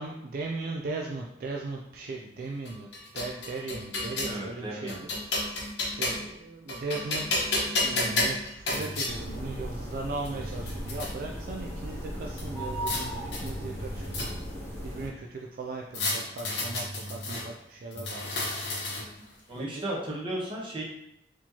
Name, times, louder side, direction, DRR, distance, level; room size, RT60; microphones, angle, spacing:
voice 1, 0.0-5.1 5.4-7.2 7.8-14.0 14.8-18.3 19.2-19.8, right 3 dB, 55° right, 0 dB, 0.4 m, -38 dB
sound 1, 2.7-4.4 4.9-6.3 6.7-9.1 9.9-10.0 10.3-11.1 12.4-13.0 13.3-14.6 15.9-17.4 17.9-19.2, left 2 dB, 80° left, 1.0 m, -31 dB
voice 2, 4.2-5.0 19.5-20.8, right 1 dB, 30° right, -4 dB, 1.0 m, -34 dB
sound 2, 9.0-15.1, equal, 15° left, 1.2 m, -37 dB
4.3 x 2.9 x 2.8 m, 0.81 s
head